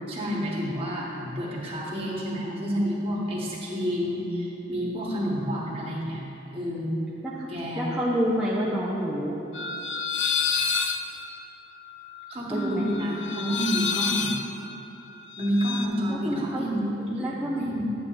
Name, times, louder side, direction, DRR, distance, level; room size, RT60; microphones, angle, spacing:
voice 1, 0.1-6.2 6.5-7.1 7.5-7.9 12.3-14.3 15.4-17.9, equal, 30° right, -5 dB, 1.2 m, -29 dB
voice 2, 7.8-9.4 12.5-12.9 16.1-16.6 17.1-17.6, equal, 5° right, -7 dB, 0.5 m, -28 dB
sound 1, 9.5-15.9, left 6 dB, 65° left, 0.4 m, -29 dB
9.3 x 8.1 x 2.5 m, 2.9 s
head